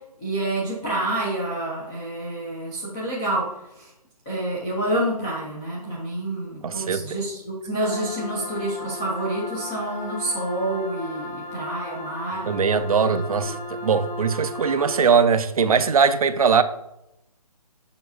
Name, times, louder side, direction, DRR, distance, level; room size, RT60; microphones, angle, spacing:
voice 1, 0.2-3.9 4.3-12.4 13.0-13.2, right 1 dB, 5° left, 0.3 m, -28 dB
voice 2, 6.6-7.2 12.4-16.6, right 6 dB, 60° right, 0.5 m, -21 dB
sound 1, 7.8-15.0, left 2 dB, 55° left, 2.0 m, -36 dB
7.1 x 5.3 x 2.6 m
figure-of-eight pair, 155°, 20 cm